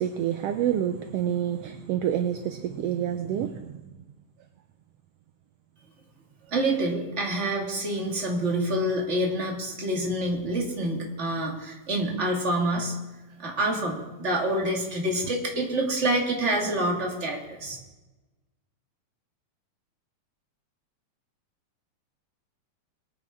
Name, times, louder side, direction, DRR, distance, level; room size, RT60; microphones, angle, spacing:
voice 1, 0.0-3.8, right 10 dB, 75° right, 1.5 m, -28 dB
voice 2, 6.5-13.0 13.4-17.8, right 1 dB, 25° right, 2.3 m, -27 dB
22.5 x 9.2 x 3.7 m
omnidirectional pair, 3.3 m